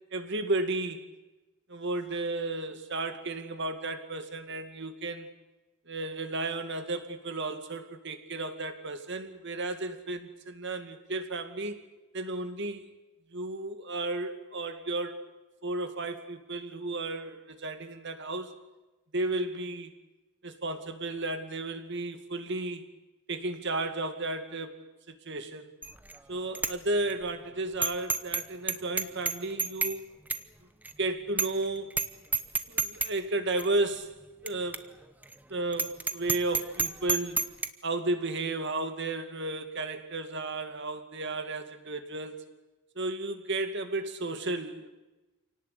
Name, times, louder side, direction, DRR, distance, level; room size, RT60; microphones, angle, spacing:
voice 1, 0.1-1.0 1.7-5.3 5.9-11.8 12.1-12.9 13.3-15.2 15.6-18.5 19.1-19.9 20.4-22.9 23.3-24.8 25.1-25.7 26.3-30.1 31.0-32.0 32.7-34.1 34.4-34.9 35.5-37.4 37.8-42.4 43.0-44.9, right 2 dB, 55° right, 8 dB, 2.1 m, -33 dB
Bicycle bell, 25.8-26.2 26.6-26.7 27.1-27.2 27.8-28.4 28.7-30.0 30.3-30.4 30.9-31.0 31.4-31.6 31.9-32.1 32.3-33.1 33.6-33.7 34.5-34.6 34.7-34.8 35.2-35.3 35.7-37.7, right 4 dB, 10° right, 0.9 m, -29 dB
27.5 x 18.5 x 8.4 m, 1.1 s
head